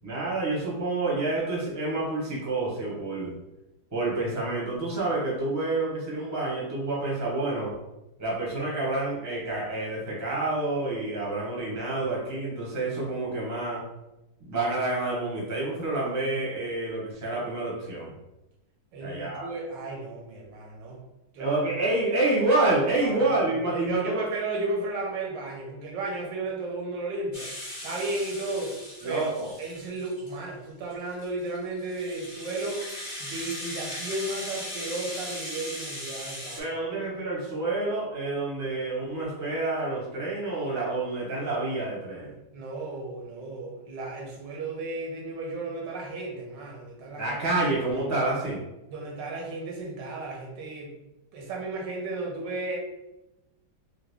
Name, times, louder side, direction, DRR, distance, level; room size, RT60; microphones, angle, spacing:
voice 1, 0.0-3.3 3.9-7.7 8.2-13.8 14.4-18.1 19.0-19.5 21.4-24.2 29.0-29.5 36.6-42.4 47.2-48.6, right 2 dB, 15° right, -5 dB, 0.7 m, -28 dB
voice 2, 18.9-21.0 21.3-21.6 23.0-27.5 27.8-28.8 29.0-32.9 33.2-36.6 42.5-47.4 48.9-51.0 51.3-52.8, right 2 dB, 90° right, -1 dB, 1.4 m, -34 dB
Rattle (instrument), 27.3-30.4 30.9-36.6, equal, 30° left, 1.2 m, -38 dB
3.4 x 2.1 x 3.4 m, 0.94 s
omnidirectional pair, 1.9 m